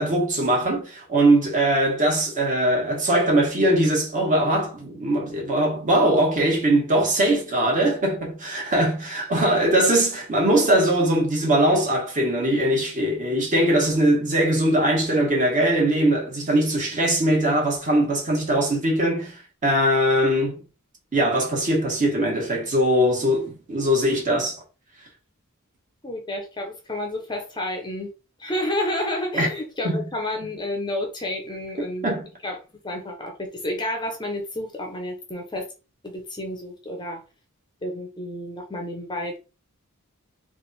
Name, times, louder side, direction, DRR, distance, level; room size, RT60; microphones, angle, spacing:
voice 1, 0.0-20.6 21.1-24.6 29.3-29.5 29.8-30.0 32.0-32.3, right 1 dB, 35° right, 1.6 m, -21 dB
voice 2, 26.0-28.1 28.4-32.1 32.4-32.6 32.8-35.7 36.0-37.2 37.8-39.4, left 1 dB, 20° left, 0.7 m, -30 dB
3.4 x 2.5 x 4.1 m
head